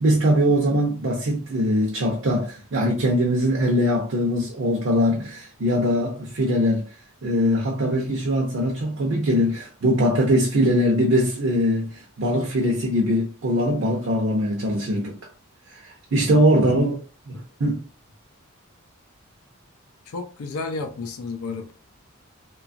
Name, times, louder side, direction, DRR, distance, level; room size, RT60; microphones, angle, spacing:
voice 1, 0.0-6.8 7.2-15.1 15.8-17.0 17.3-17.8, equal, 60° right, 0.6 m, -21 dB
voice 2, 20.1-21.7, left 3 dB, 85° left, 0.4 m, -32 dB
2.9 x 2.3 x 2.5 m
head